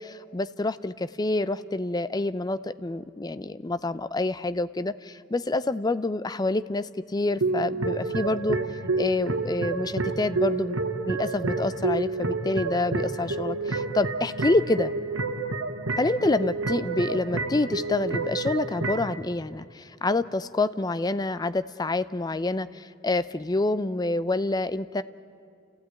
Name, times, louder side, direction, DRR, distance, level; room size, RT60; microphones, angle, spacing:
voice 1, 0.0-8.6 9.0-10.8 11.1-14.9 16.0-25.0, left 2 dB, 20° left, 15 dB, 0.5 m, -27 dB
sound 1, 7.4-19.1, right 3 dB, 75° right, 1.4 m, -29 dB
29.5 x 15.5 x 9.4 m, 2.3 s
head